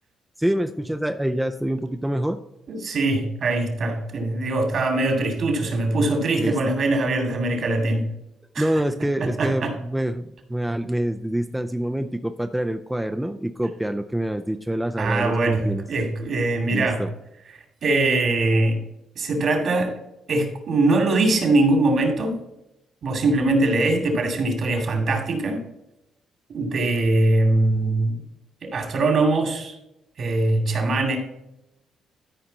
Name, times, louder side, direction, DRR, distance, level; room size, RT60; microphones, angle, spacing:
voice 1, 0.4-2.4 6.4-6.6 8.6-15.8 16.7-17.1, right 1 dB, 5° right, 6 dB, 0.5 m, -26 dB
voice 2, 2.7-8.1 8.5-8.7 9.2-9.7 15.0-17.0 17.8-18.8 19.2-19.9 20.3-22.4 23.0-25.6 26.5-28.1 28.6-29.8 30.2-31.2, right 2 dB, 60° right, 3 dB, 2.5 m, -22 dB
13.5 x 5.0 x 4.1 m, 0.88 s
cardioid pair, 90°, 0 cm